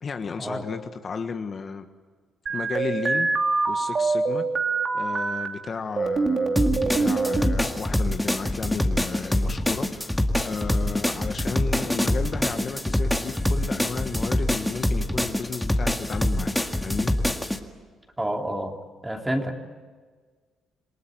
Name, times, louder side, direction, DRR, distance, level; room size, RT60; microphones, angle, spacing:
voice 1, 0.0-1.9 2.5-3.3 3.7-4.4 4.9-16.5 16.8-17.1, left 5 dB, 45° left, 7 dB, 1.4 m, -33 dB
sound 1, 2.5-5.5 6.0-7.6, right 3 dB, 40° right, 2.8 m, -24 dB
sound 2, 6.6-17.6, left 1 dB, 5° left, 2.0 m, -25 dB
voice 2, 18.2-18.7 19.0-19.6, right 1 dB, 10° right, 3 dB, 3.1 m, -28 dB
27.5 x 19.0 x 9.3 m, 1.5 s
cardioid pair, 90°, 0 cm